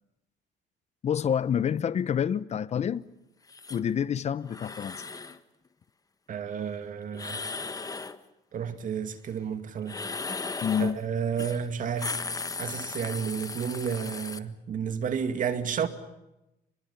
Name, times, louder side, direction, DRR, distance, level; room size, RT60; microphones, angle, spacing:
voice 1, 1.0-3.0 3.7-5.0 10.6-11.0, left 8 dB, 40° left, 0.9 m, -28 dB
sound 1, 3.5-3.8 4.5-5.4 7.1-8.2 9.8-11.0 11.4-11.6 11.9-14.4, left 4 dB, 20° left, 1.4 m, -36 dB
voice 2, 6.3-7.4 8.5-10.0 10.8-12.2 12.6-15.9, right 7 dB, 50° right, 2.4 m, -31 dB
28.0 x 21.5 x 7.3 m
cardioid pair, 110°, 17 cm